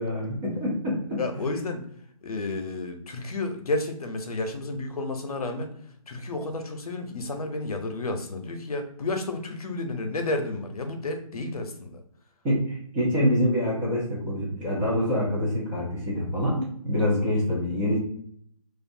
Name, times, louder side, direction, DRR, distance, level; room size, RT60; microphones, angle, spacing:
voice 1, 0.0-1.4 11.3-11.4 12.4-18.0, left 1 dB, 10° right, -6 dB, 0.4 m, -26 dB
voice 2, 1.2-1.8 2.2-5.7 6.1-12.0, left 2 dB, 80° left, 5 dB, 0.7 m, -31 dB
2.5 x 2.3 x 2.6 m, 0.67 s
hypercardioid pair, 155°, 19 cm